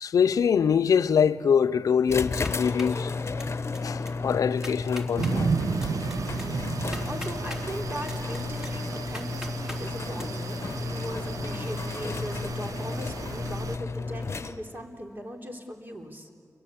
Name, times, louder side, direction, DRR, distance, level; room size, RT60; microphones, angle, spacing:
voice 1, 0.0-3.1 3.8-5.5, left 7 dB, 90° left, 0.6 m, -24 dB
sound 1, 2.1-14.9, left 4 dB, 50° left, 0.9 m, -33 dB
sound 2, 2.4-3.0 3.4-3.8 4.1-4.2 4.5-5.3 5.8-7.6 8.0-9.8 10.2-10.3, left 1 dB, 10° right, 3.8 m, -41 dB
sound 3, 5.2-13.8, right 5 dB, 80° right, 0.7 m, -33 dB
voice 2, 7.0-16.3, equal, 35° right, 3.9 m, -39 dB
30.0 x 22.5 x 8.6 m
cardioid pair, 55°, 6 cm